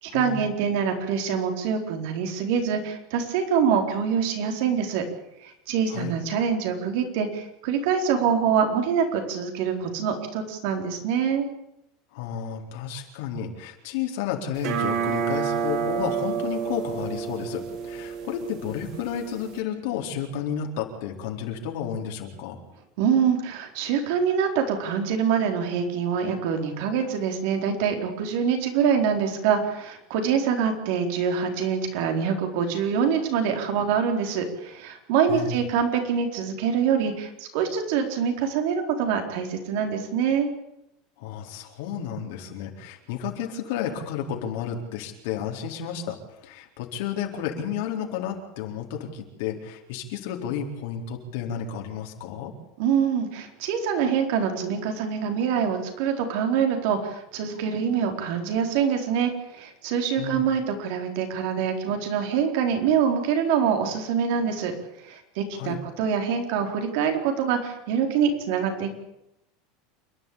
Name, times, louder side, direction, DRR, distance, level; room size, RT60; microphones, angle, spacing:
voice 1, 0.0-5.0 5.4-11.5 23.0-40.5 52.8-64.7 65.0-68.9, right 7 dB, 65° right, 5 dB, 4.4 m, -25 dB
voice 2, 12.1-22.6 35.3-35.6 41.2-52.5 60.2-60.5 65.5-65.8, left 8 dB, 70° left, 2 dB, 4.2 m, -32 dB
sound 1, 14.6-19.6, right 7 dB, 50° right, 2.0 m, -29 dB
28.5 x 11.5 x 8.9 m, 0.85 s
supercardioid pair, 150°, 0 cm